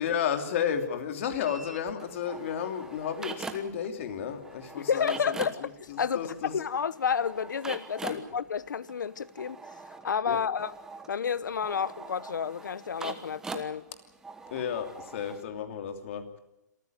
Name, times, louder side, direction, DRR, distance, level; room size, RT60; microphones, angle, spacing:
voice 1, 0.0-6.5 8.1-8.2 10.3-10.4 14.5-16.4, left 8 dB, 45° left, 3.0 m, -33 dB
sound 1, 1.4-3.9 4.1-15.4, right 4 dB, 5° right, 1.2 m, -43 dB
voice 2, 4.8-9.6 10.0-10.7 11.1-13.8, left 7 dB, 85° left, 1.0 m, -30 dB
26.5 x 14.5 x 9.3 m
hypercardioid pair, 160°, 10 cm